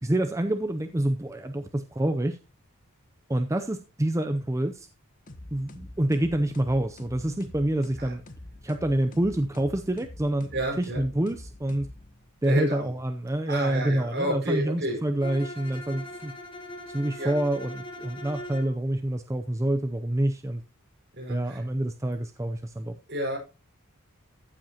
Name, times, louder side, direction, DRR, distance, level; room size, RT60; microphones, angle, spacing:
voice 1, 0.0-2.4 3.3-4.9 5.5-8.2 8.6-11.9 12.4-16.3 16.9-20.6 21.3-22.9, right 1 dB, 15° right, 7 dB, 0.5 m, -27 dB
sound 1, 5.3-12.4, left 1 dB, 40° left, 1.0 m, -45 dB
voice 2, 10.5-11.0 12.4-12.9 13.5-15.0 17.2-17.3 21.2-21.6 23.1-23.4, right 1 dB, 50° right, 0 dB, 4.9 m, -30 dB
Bowed string instrument, 15.2-18.8, equal, 25° left, 1.9 m, -40 dB
14.5 x 7.7 x 2.9 m, 0.30 s
head